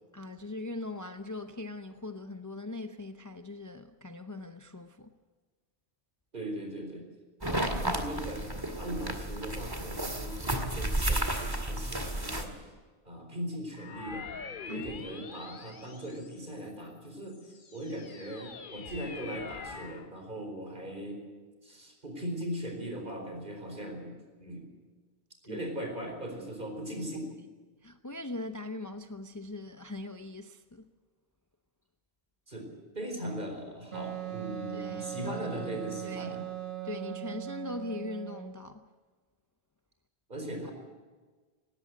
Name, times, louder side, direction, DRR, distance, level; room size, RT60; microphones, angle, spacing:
voice 1, 0.1-5.1 14.7-14.9 25.5-25.6 27.8-30.9 34.7-35.4 36.1-36.4 36.8-38.9, left 2 dB, 20° left, 0.6 m, -40 dB
voice 2, 6.3-7.1 7.4-12.7 13.0-14.3 14.7-21.2 21.6-24.7 25.5-27.3 32.5-36.5 40.3-40.7, right 1 dB, 50° right, 4.6 m, -39 dB
sound 1, 7.4-12.4, right 1 dB, 20° right, 2.0 m, -32 dB
sound 2, 13.7-16.7 17.2-20.1, left 5 dB, 50° left, 1.1 m, -44 dB
Wind instrument woodwind instrument, 33.9-38.6, right 13 dB, 70° right, 1.4 m, -39 dB
19.5 x 17.5 x 7.9 m
omnidirectional pair, 1.1 m